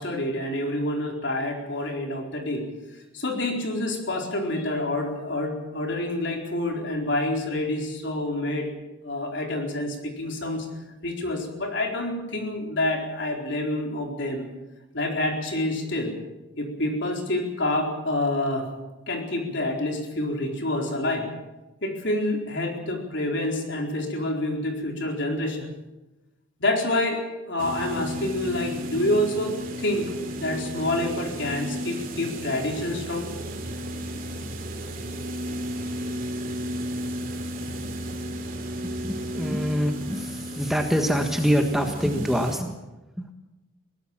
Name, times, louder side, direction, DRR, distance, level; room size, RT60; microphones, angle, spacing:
voice 1, 0.0-2.6 3.1-8.7 9.0-10.7 11.0-14.4 14.9-16.1 16.6-18.7 19.1-21.3 21.8-25.7 26.6-27.2 27.5-33.3, left 1 dB, 60° left, 2 dB, 4.4 m, -27 dB
sound 1, 27.6-42.6, equal, 40° right, 2.8 m, -33 dB
voice 2, 38.8-42.8 43.2-43.3, equal, ahead, 3 dB, 1.5 m, -25 dB
22.5 x 18.0 x 7.4 m, 1.0 s
head